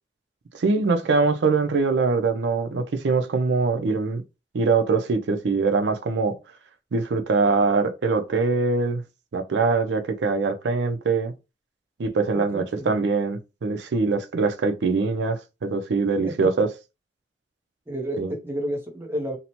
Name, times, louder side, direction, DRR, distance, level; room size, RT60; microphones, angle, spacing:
voice 1, 0.5-4.2 4.5-6.4 6.9-9.0 9.3-11.3 12.0-16.7 18.2-18.3, right 4 dB, 80° right, 0.4 m, -23 dB
voice 2, 12.3-12.9 16.2-16.4 17.9-19.4, right 1 dB, 15° right, 0.6 m, -31 dB
2.7 x 2.1 x 2.8 m
head